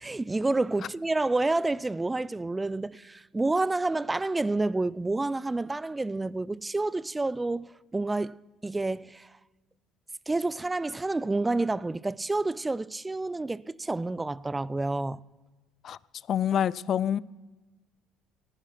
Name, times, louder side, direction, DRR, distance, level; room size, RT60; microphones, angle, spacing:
voice 1, 0.0-8.4 8.6-9.3 10.3-15.2, right 2 dB, 15° right, 0.4 m, -29 dB
voice 2, 16.3-17.2, left 9 dB, 55° left, 0.3 m, -26 dB
16.0 x 9.9 x 5.8 m
supercardioid pair, 85°, 0 cm